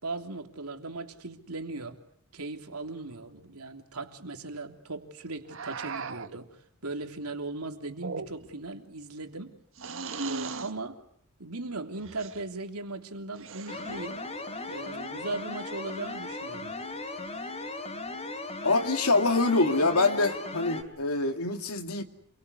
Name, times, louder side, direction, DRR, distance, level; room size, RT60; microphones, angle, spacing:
voice 1, 0.0-2.0 2.3-6.5 6.8-9.6 10.2-11.0 11.4-14.2 14.7-16.7, right 3 dB, 85° right, 5 dB, 3.3 m, -38 dB
sound 1, 5.5-6.4 7.9-8.6 9.8-10.8 12.0-12.4 13.3-14.1, right 4 dB, 65° right, 1.7 m, -38 dB
sound 2, 13.7-20.8, left 2 dB, 30° left, 3.4 m, -37 dB
voice 2, 18.6-22.0, left 3 dB, 80° left, 6 dB, 2.5 m, -25 dB
28.0 x 23.5 x 8.4 m, 0.67 s
head